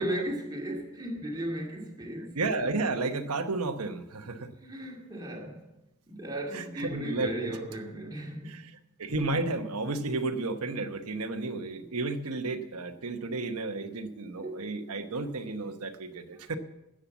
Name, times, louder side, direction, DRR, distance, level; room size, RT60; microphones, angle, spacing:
voice 1, 0.0-2.4 4.6-5.7 6.1-8.7 14.4-14.7, right 1 dB, 20° right, 2.3 m, -36 dB
voice 2, 2.3-4.5 6.5-7.6 8.5-8.6 9.0-16.6, right 3 dB, 85° right, 1.1 m, -32 dB
13.0 x 8.8 x 7.1 m
head